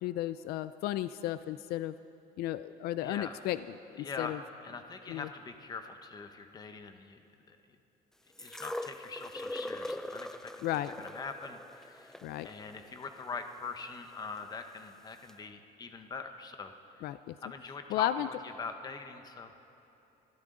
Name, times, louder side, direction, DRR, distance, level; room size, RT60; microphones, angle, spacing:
voice 1, 0.0-1.9 2.4-3.6 4.0-4.4 5.1-5.3 10.6-10.9 12.2-12.5 17.0-17.3 17.9-18.3, left 13 dB, 75° left, 14 dB, 0.4 m, -33 dB
voice 2, 3.0-3.4 4.0-7.2 7.5-7.6 8.4-17.1 17.4-19.5, left 4 dB, 25° left, 7 dB, 0.9 m, -43 dB
sound 1, 8.4-14.4 15.3-15.4, left 1 dB, 5° left, 0.3 m, -42 dB
23.5 x 13.5 x 3.8 m, 3.0 s
cardioid pair, 155°, 16 cm